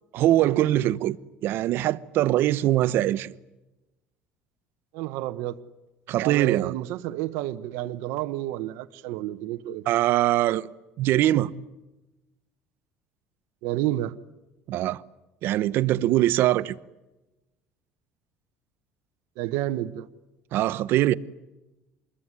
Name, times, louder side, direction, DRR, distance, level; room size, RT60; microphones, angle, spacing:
voice 1, 0.1-1.2 1.4-3.3 6.1-6.7 9.9-10.7 11.0-11.5 14.7-15.0 15.4-16.7 20.5-21.1, right 14 dB, 55° right, 1.0 m, -22 dB
voice 2, 4.9-5.6 6.2-9.8 13.6-14.1 19.4-20.1, right 14 dB, 75° right, 1.1 m, -30 dB
26.5 x 21.5 x 9.8 m
cardioid pair, 145°, 4 cm